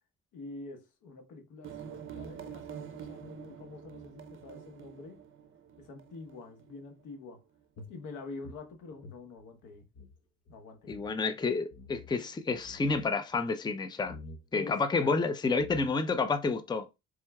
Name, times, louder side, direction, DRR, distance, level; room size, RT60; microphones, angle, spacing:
voice 1, 0.3-5.2 5.8-7.4 7.9-9.9 10.5-11.0 14.5-15.1, left 3 dB, 85° left, 1.1 m, -46 dB
sound 1, 1.6-7.0, right 8 dB, 45° right, 0.6 m, -46 dB
sound 2, 7.8-10.2 10.5-10.6 10.8-11.1 11.7-12.2 12.5-13.1 14.0-14.4 15.2-15.3 15.6-16.2, left 3 dB, 55° left, 1.0 m, -49 dB
voice 2, 10.9-14.2 14.5-17.0, left 4 dB, 15° left, 0.5 m, -30 dB
4.4 x 3.6 x 2.2 m
cardioid pair, 90°, 30 cm